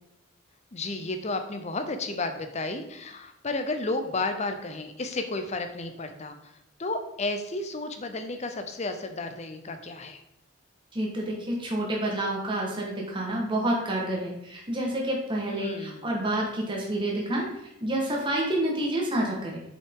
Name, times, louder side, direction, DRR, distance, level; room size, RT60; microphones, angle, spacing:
voice 1, 0.7-6.5 6.8-10.2 15.5-16.1, left 2 dB, 30° left, 7 dB, 0.6 m, -32 dB
voice 2, 10.9-17.5 17.8-19.6, right 1 dB, 25° right, -2 dB, 1.4 m, -28 dB
6.8 x 5.5 x 3.7 m, 0.82 s
head